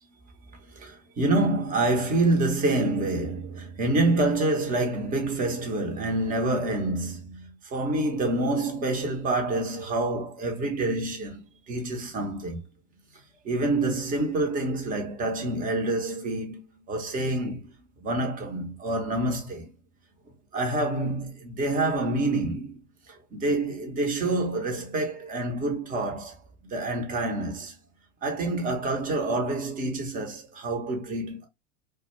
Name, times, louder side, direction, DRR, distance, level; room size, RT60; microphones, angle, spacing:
voice 1, 0.7-12.6 13.4-17.7 18.0-19.7 20.5-22.8 23.1-26.4 26.6-27.7 28.2-31.5, right 2 dB, 20° right, 0.8 m, -27 dB
2.2 x 2.2 x 2.9 m
hypercardioid pair, 100°, 37 cm